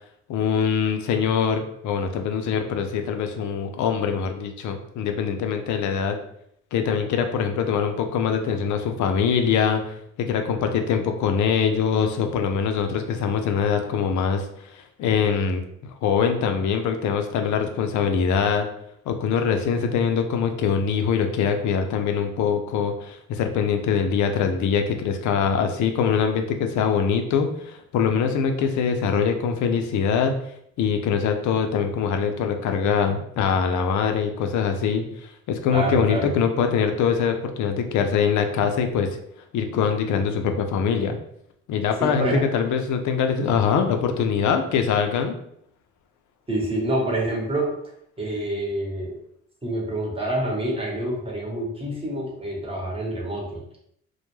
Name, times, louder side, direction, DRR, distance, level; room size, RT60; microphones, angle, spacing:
voice 1, 0.3-6.2 6.7-15.6 16.0-18.7 19.1-30.3 30.8-39.1 39.5-41.2 41.7-45.3, left 6 dB, 75° left, 6 dB, 0.5 m, -23 dB
voice 2, 35.7-36.3 42.0-42.4 46.5-47.7 48.2-49.2 49.6-53.8, right 1 dB, 20° right, -1 dB, 0.9 m, -27 dB
2.2 x 2.1 x 3.1 m, 0.72 s
cardioid pair, 90°, 30 cm